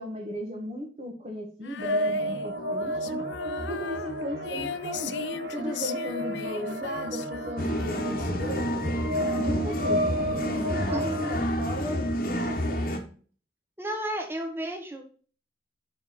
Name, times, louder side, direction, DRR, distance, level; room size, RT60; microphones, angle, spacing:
voice 1, 0.0-3.0 3.7-5.2 5.5-9.0 9.4-12.9, equal, 35° right, -1 dB, 1.3 m, -36 dB
Female singing, 1.6-9.0, left 7 dB, 80° left, 0.4 m, -38 dB
sound 1, 1.8-11.4, equal, 75° right, 0.9 m, -32 dB
sound 2, 7.6-13.0, equal, 50° left, 1.1 m, -29 dB
voice 2, 13.8-15.1, right 1 dB, 15° right, 4 dB, 1.2 m, -33 dB
6.6 x 4.7 x 4.2 m, 0.41 s
head